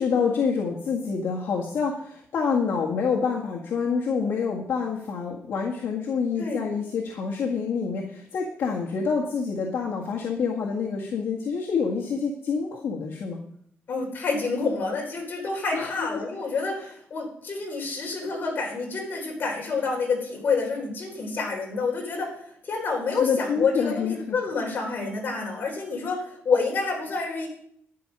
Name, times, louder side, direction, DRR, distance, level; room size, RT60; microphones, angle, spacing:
voice 1, 0.0-13.4 15.7-16.1 23.2-24.3, left 5 dB, 65° left, -1 dB, 1.7 m, -27 dB
voice 2, 13.9-22.4 22.6-27.5, left 4 dB, 45° left, 1 dB, 3.8 m, -28 dB
12.5 x 10.0 x 5.5 m, 0.70 s
cardioid pair, 140°, 5 cm